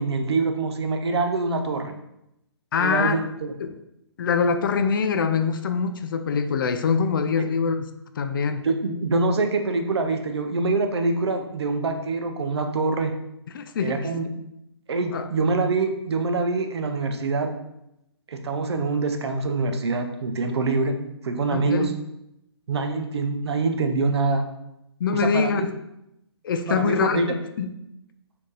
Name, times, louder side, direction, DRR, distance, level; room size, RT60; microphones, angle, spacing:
voice 1, 0.0-1.9 2.8-3.5 7.4-7.5 8.6-13.1 13.8-14.3 14.9-17.5 18.3-21.0 21.2-21.9 22.7-24.5 25.1-25.7 26.7-27.3, right 3 dB, 65° right, 6 dB, 0.6 m, -25 dB
voice 2, 2.7-3.2 3.6-3.8 4.2-8.7 13.5-14.0 15.1-15.3 21.5-21.9 25.0-25.7 26.4-27.2 27.6-27.7, left 5 dB, 50° left, 8 dB, 0.4 m, -24 dB
4.2 x 2.7 x 3.2 m, 0.84 s
hypercardioid pair, 150°, 14 cm